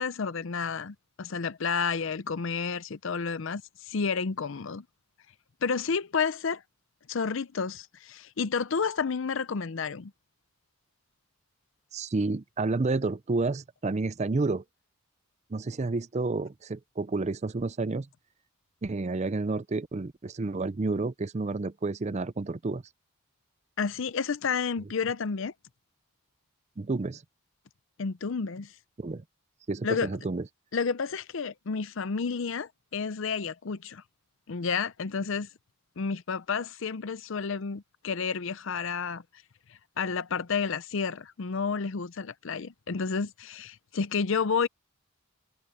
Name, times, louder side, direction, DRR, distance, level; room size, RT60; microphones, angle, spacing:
voice 1, 0.0-4.8 5.6-6.6 7.1-10.1 23.8-25.5 28.0-28.7 29.8-30.1 30.7-34.0 34.5-35.5 36.0-39.2 40.0-44.7, left 5 dB, 60° left, 0.5 m, -30 dB
voice 2, 11.9-14.6 15.5-18.1 18.8-22.8 26.8-27.2 29.0-29.2 29.7-30.4, right 3 dB, 30° right, 0.4 m, -30 dB
head